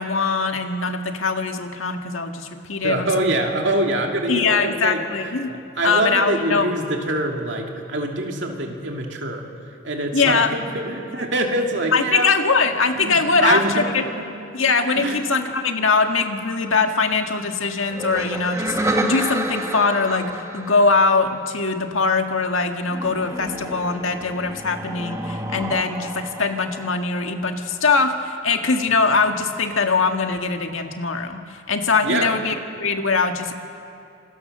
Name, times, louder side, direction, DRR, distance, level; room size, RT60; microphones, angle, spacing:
voice 1, 0.0-3.3 4.3-5.5 5.8-6.7 10.1-10.6 11.9-14.0 14.5-33.5, left 4 dB, 85° left, 5 dB, 1.7 m, -22 dB
voice 2, 2.8-5.3 5.8-9.5 9.8-12.3 13.0-13.9 15.0-15.2 32.0-32.3, right 1 dB, 60° right, 1 dB, 2.7 m, -24 dB
sound 1, 17.9-21.6 22.9-27.5, right 1 dB, 15° right, 1.6 m, -30 dB
27.0 x 20.0 x 6.7 m, 2.6 s
head